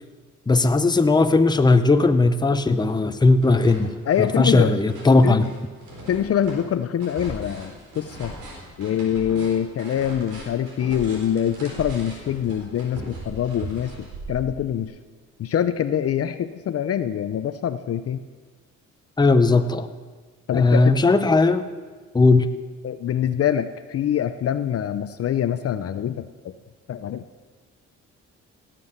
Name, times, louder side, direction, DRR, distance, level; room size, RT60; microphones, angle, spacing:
voice 1, 0.5-3.9 4.2-5.5 19.2-19.9 20.5-21.7 22.1-22.5, left 3 dB, 15° left, 10 dB, 0.7 m, -17 dB
sound 1, 2.2-2.9 3.2-14.9, right 2 dB, 85° right, 3.8 m, -39 dB
voice 2, 4.1-4.7 5.2-5.5 6.1-8.3 8.8-14.9 15.4-18.2 20.5-21.0 22.8-26.5 26.9-27.2, left 9 dB, 50° left, 12 dB, 0.6 m, -25 dB
17.0 x 7.6 x 6.7 m, 1.4 s
cardioid pair, 90°, 30 cm